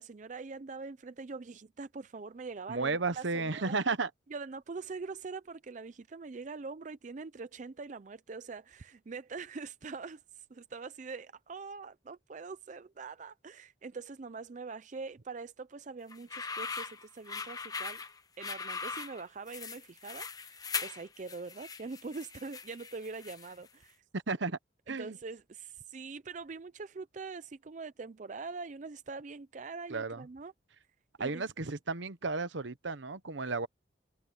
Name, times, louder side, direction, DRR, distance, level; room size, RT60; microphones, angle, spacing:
voice 1, 0.0-3.7 4.3-18.0 18.4-24.0 24.9-30.5 31.2-31.4, right 4 dB, 40° right, 0.4 m, -43 dB
voice 2, 2.7-4.1 24.3-24.6 24.9-25.2 29.9-30.2 31.2-33.7, right 3 dB, 70° right, 1.0 m, -33 dB
sound 1, 16.1-23.7, left 5 dB, 20° left, 0.9 m, -40 dB
head